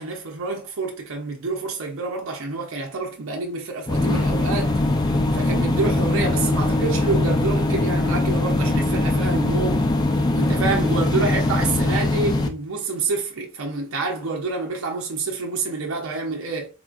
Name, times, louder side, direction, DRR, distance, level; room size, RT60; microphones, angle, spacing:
voice 1, 0.0-4.7 5.3-9.9 10.3-16.7, right 3 dB, 80° right, 0.6 m, -27 dB
sound 1, 3.9-12.5, left 2 dB, 20° left, 0.3 m, -21 dB
3.7 x 2.4 x 2.4 m
head